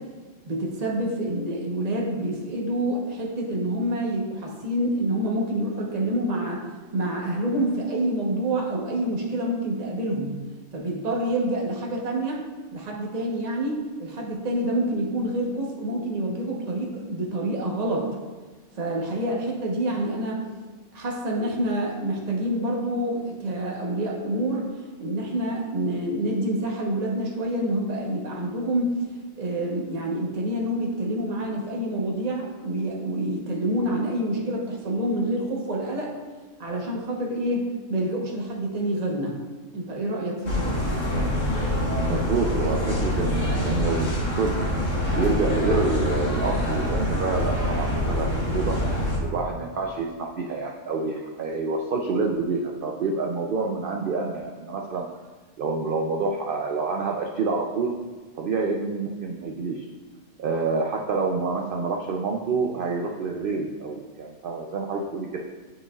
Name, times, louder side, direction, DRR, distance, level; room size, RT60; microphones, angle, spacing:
voice 1, 0.5-6.6 6.9-10.4 10.7-12.4 12.7-18.0 18.8-20.4 20.9-24.7 25.0-29.0 29.3-36.1 36.6-39.4 39.7-40.8, right 1 dB, 30° right, -2 dB, 1.0 m, -27 dB
sound 1, 40.4-49.2, left 1 dB, 65° left, 1.8 m, -25 dB
voice 2, 41.1-44.1 44.4-44.6 45.2-48.7 49.2-55.0 55.6-57.9 58.4-59.9 60.4-65.4, right 4 dB, 60° right, 1 dB, 0.5 m, -27 dB
9.7 x 4.9 x 2.4 m, 1.4 s
omnidirectional pair, 1.5 m